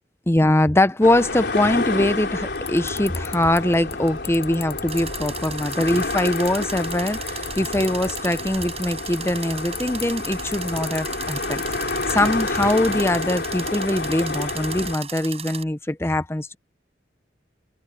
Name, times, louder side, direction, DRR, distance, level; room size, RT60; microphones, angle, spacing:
voice 1, 0.3-11.6 12.1-16.6, left 1 dB, 15° left, 0.8 m, -22 dB
sound 1, 1.0-14.9, left 3 dB, 65° left, 4.2 m, -29 dB
sound 2, 1.1-1.2 4.9-15.6, right 7 dB, 35° right, 7.9 m, -36 dB
sound 3, 1.7-13.3, left 6 dB, 35° left, 5.0 m, -41 dB
head